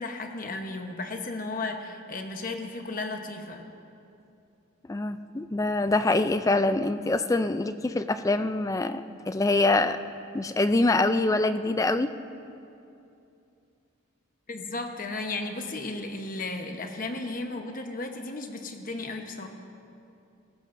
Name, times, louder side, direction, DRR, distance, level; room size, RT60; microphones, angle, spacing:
voice 1, 0.0-3.6 14.5-19.5, left 2 dB, 40° left, 4 dB, 1.0 m, -34 dB
voice 2, 4.9-10.0 10.3-12.1, left 2 dB, 15° left, 11 dB, 0.3 m, -25 dB
18.5 x 15.0 x 2.6 m, 2.6 s
head